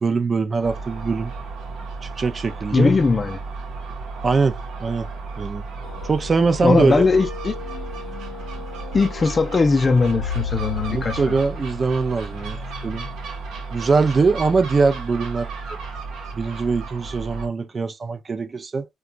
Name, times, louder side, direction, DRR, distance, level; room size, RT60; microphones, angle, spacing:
voice 1, 0.0-1.3 2.0-2.9 4.2-5.1 5.4-5.6 6.0-7.0 10.9-13.1 13.7-15.8 16.3-18.9, right 4 dB, 35° right, 0.5 m, -22 dB
Gull seagull, 0.6-17.5, right 4 dB, 85° right, 0.8 m, -34 dB
voice 2, 2.7-3.4 6.6-7.6 8.9-11.3, left 4 dB, 30° left, 0.5 m, -19 dB
sound 1, 5.8-14.8, left 8 dB, 85° left, 0.6 m, -36 dB
2.8 x 2.3 x 2.4 m
cardioid pair, 90°, 0 cm